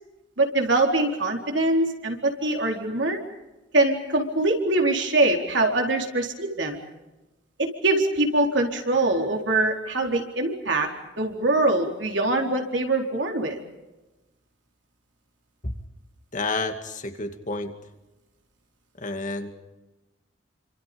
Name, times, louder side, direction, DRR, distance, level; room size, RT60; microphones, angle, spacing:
voice 1, 0.4-3.2 3.7-6.8 7.6-10.9 11.2-13.6, right 2 dB, 70° right, 2 dB, 4.3 m, -23 dB
voice 2, 16.3-17.7 19.0-19.5, left 3 dB, 40° left, 6 dB, 2.4 m, -30 dB
28.5 x 26.5 x 5.3 m, 1.1 s
head